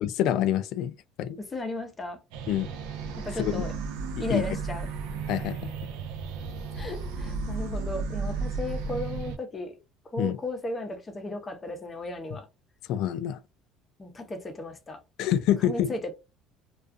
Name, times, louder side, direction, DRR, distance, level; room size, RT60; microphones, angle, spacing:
voice 1, 0.0-0.9 1.2-1.4 2.5-2.7 3.4-3.6 4.3-4.4 5.3-5.7 10.2-10.4 12.9-13.4 15.2-15.9, left 11 dB, 65° left, 0.3 m, -26 dB
voice 2, 1.4-2.2 3.2-3.7 4.2-4.9 6.8-9.8 10.1-12.5 14.0-15.0 15.6-16.1, left 1 dB, 20° left, 0.6 m, -35 dB
sound 1, 2.3-9.4, right 4 dB, 85° right, 0.4 m, -34 dB
2.3 x 2.2 x 2.5 m
cardioid pair, 135°, 0 cm